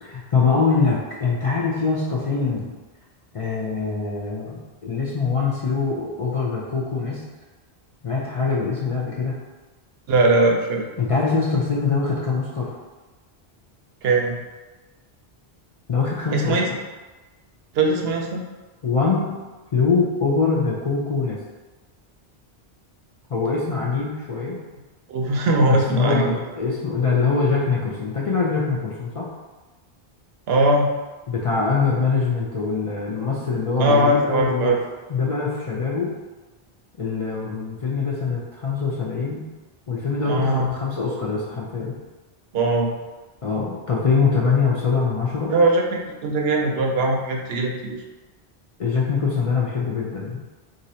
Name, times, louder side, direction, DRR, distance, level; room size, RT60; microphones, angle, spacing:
voice 1, 0.0-2.7 3.3-7.2 8.0-9.3 11.0-12.7 15.9-16.6 18.8-19.4 19.7-21.4 23.3-24.6 25.7-29.3 31.3-34.8 35.1-36.1 37.0-39.5 39.9-41.9 43.4-45.5 48.8-50.4, left 4 dB, 45° left, -5 dB, 0.4 m, -23 dB
voice 2, 10.1-10.8 14.0-14.4 16.3-16.7 17.7-18.5 25.1-26.4 30.5-30.9 33.8-34.8 40.2-40.7 42.5-42.9 45.5-45.8 46.2-48.0, right 2 dB, 75° right, 1 dB, 0.8 m, -20 dB
2.6 x 2.6 x 4.2 m, 1.2 s
omnidirectional pair, 1.0 m